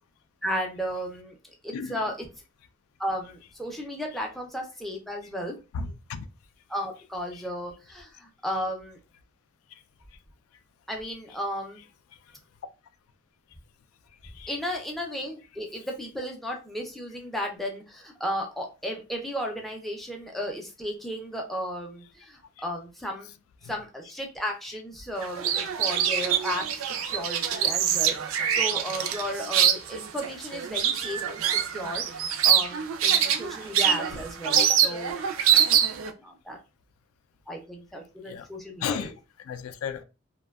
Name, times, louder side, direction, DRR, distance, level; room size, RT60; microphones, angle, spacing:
voice 1, 0.4-1.4 1.6-2.3 3.0-5.5 6.7-9.0 10.9-11.8 14.5-23.3 23.6-35.2 36.2-36.6 37.5-39.1, equal, ahead, 0.3 m, -34 dB
voice 2, 5.7-6.3 7.3-7.4 9.7-9.8 12.3-12.4 14.2-14.5 23.6-23.7 33.6-33.7 34.6-34.7 35.6-35.7 38.2-38.5 38.8-39.1 39.4-40.0, left 6 dB, 90° left, 0.3 m, -34 dB
sound 1, 25.2-36.1, right 9 dB, 75° right, 0.4 m, -24 dB
2.6 x 2.1 x 2.2 m
head